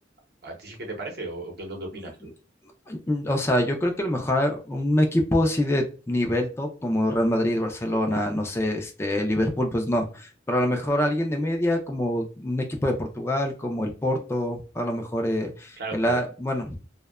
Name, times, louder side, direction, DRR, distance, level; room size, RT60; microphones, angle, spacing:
voice 1, 0.4-2.2 15.8-16.2, right 2 dB, 60° right, 2 dB, 0.8 m, -35 dB
voice 2, 2.0-2.3 2.9-16.8, left 1 dB, 15° left, 3 dB, 0.3 m, -25 dB
2.7 x 2.1 x 2.3 m, 0.35 s
head